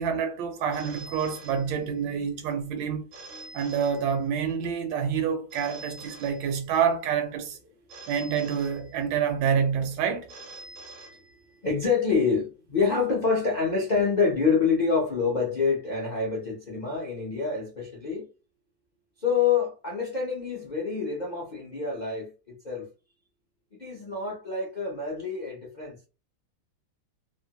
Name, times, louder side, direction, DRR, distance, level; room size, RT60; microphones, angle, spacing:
voice 1, 0.0-3.0 3.5-7.6 8.1-10.3, right 7 dB, 80° right, 1.4 m, -27 dB
Telephone, 0.7-2.2 3.1-4.6 5.5-7.0 7.9-9.4 10.3-11.8, right 2 dB, 60° right, 0.9 m, -46 dB
voice 2, 11.6-18.3 19.2-22.9 23.8-26.0, left 5 dB, 70° left, 0.4 m, -27 dB
3.3 x 2.1 x 2.8 m
omnidirectional pair, 2.1 m